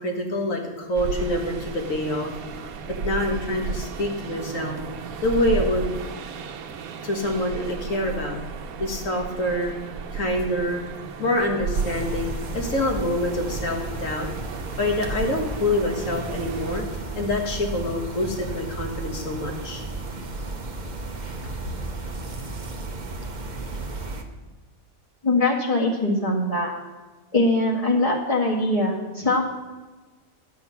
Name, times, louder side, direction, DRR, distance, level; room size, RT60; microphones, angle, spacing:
voice 1, 0.0-2.3 3.0-4.8 5.2-5.9 7.0-8.4 8.8-9.7 10.1-10.9 11.2-14.3 14.8-16.8 17.1-19.8, left 1 dB, 65° left, 1 dB, 2.1 m, -26 dB
sound 1, 0.9-16.8, right 5 dB, 85° right, 1.2 m, -34 dB
sound 2, 11.7-24.2, right 2 dB, 35° right, 0.9 m, -34 dB
voice 2, 25.2-26.7 27.3-29.4, left 2 dB, 25° left, -1 dB, 1.9 m, -22 dB
10.5 x 8.2 x 5.7 m, 1.3 s
omnidirectional pair, 1.4 m